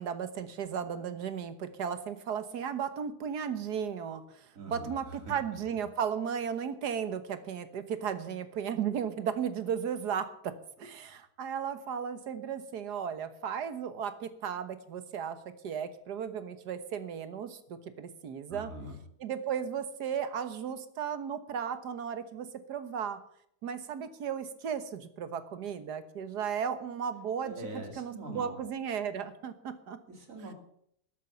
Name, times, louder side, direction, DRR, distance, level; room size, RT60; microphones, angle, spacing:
voice 1, 0.0-18.7 19.2-23.2 23.6-30.0, right 7 dB, 90° right, 11 dB, 1.8 m, -35 dB
voice 2, 4.5-5.6 18.5-19.0 27.4-28.6 30.1-30.5, right 1 dB, 55° right, 3 dB, 3.1 m, -43 dB
13.0 x 8.4 x 9.2 m, 0.71 s
omnidirectional pair, 1.7 m